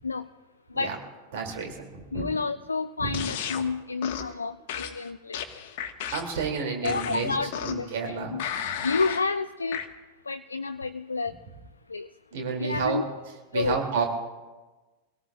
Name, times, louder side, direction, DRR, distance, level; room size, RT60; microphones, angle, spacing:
voice 1, 1.3-2.3 3.0-3.2 4.8-4.9 6.1-8.3 12.3-13.0 13.5-14.1, right 5 dB, 55° right, 2 dB, 2.6 m, -30 dB
voice 2, 2.1-5.4 6.8-8.4 8.8-9.8 10.3-11.3 11.9-12.1 12.6-13.1 13.5-13.8, left 4 dB, 75° left, 10 dB, 0.4 m, -30 dB
sound 1, 3.1-3.6 4.0-4.3 4.7-6.4 6.8-7.9 8.4-9.3 9.7-9.9, left 9 dB, 50° left, 1.2 m, -34 dB
25.5 x 18.0 x 2.4 m, 1.2 s
figure-of-eight pair, 90°, 0 cm